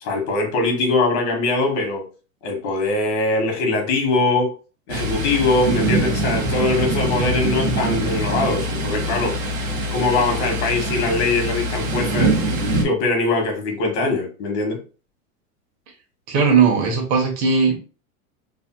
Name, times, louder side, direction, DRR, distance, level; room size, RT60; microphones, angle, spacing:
voice 1, 0.0-2.0 2.4-4.5 4.9-9.4 9.9-12.3 12.8-14.8, left 3 dB, 50° left, 2 dB, 1.3 m, -22 dB
Thunder, 4.9-12.9, right 1 dB, 75° right, 1.2 m, -23 dB
voice 2, 16.3-17.8, right 5 dB, 50° right, 1 dB, 1.2 m, -17 dB
3.4 x 2.7 x 2.2 m, 0.36 s
hypercardioid pair, 110°, 44 cm